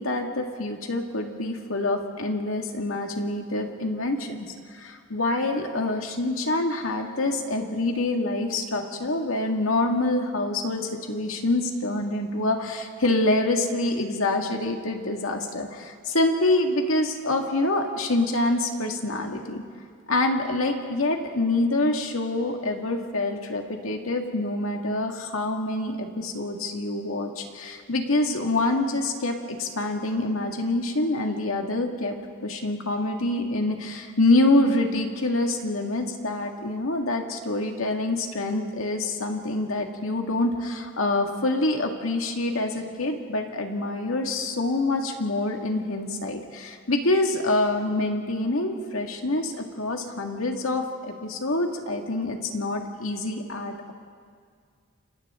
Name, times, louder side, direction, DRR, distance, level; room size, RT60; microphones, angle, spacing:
voice 1, 0.0-10.8 11.1-19.6 20.1-32.2 32.4-53.9, left 2 dB, 90° left, 3 dB, 2.1 m, -26 dB
29.5 x 26.5 x 3.8 m, 2.1 s
head